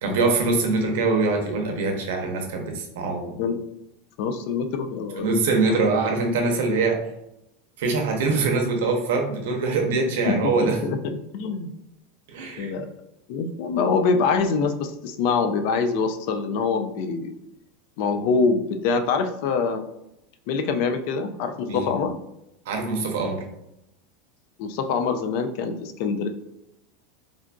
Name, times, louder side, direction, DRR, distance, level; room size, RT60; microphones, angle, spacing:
voice 1, 0.0-3.3 5.2-7.0 7.8-10.8 12.3-12.7 21.7-21.9 22.7-23.4, right 3 dB, 80° right, 2 dB, 0.7 m, -23 dB
voice 2, 4.2-5.8 10.3-11.7 12.6-12.9 13.3-17.4 18.0-19.8 20.5-22.1 24.6-26.3, left 5 dB, 50° left, 8 dB, 0.3 m, -25 dB
3.7 x 2.5 x 2.2 m, 0.84 s
supercardioid pair, 170°, 0 cm